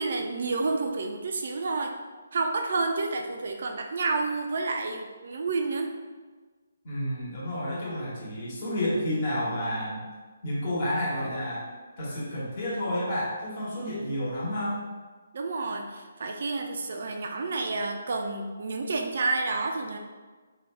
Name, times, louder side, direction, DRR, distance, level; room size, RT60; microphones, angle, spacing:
voice 1, 0.0-2.0 2.3-5.9 15.3-20.0, right 3 dB, 55° right, 3 dB, 0.3 m, -29 dB
voice 2, 6.8-10.1 10.4-11.6 12.0-14.8, equal, 40° left, -7 dB, 1.1 m, -30 dB
2.8 x 2.2 x 3.1 m, 1.4 s
figure-of-eight pair, 140°, 0 cm